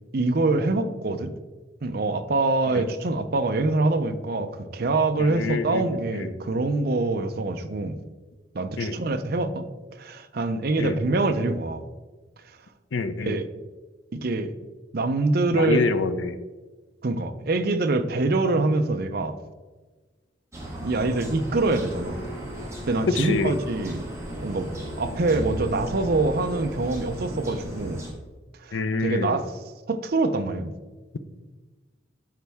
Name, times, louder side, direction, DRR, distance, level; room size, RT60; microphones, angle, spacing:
voice 1, 0.1-1.3 1.8-8.0 8.5-9.7 10.0-11.9 13.3-13.5 14.1-14.5 14.9-15.9 17.0-19.4 20.8-22.2 22.9-24.0 24.4-24.7 25.0-28.0 28.6-28.8 29.0-29.5 29.9-30.7, right 2 dB, 50° right, 8 dB, 0.6 m, -25 dB
voice 2, 5.2-6.3 8.8-9.0 10.8-11.0 12.9-13.4 15.5-16.4 23.1-23.6 28.7-29.4, left 3 dB, 75° left, 11 dB, 0.6 m, -26 dB
sound 1, 20.5-28.1, right 1 dB, 15° right, 1.5 m, -35 dB
12.0 x 4.2 x 3.5 m, 1.3 s
head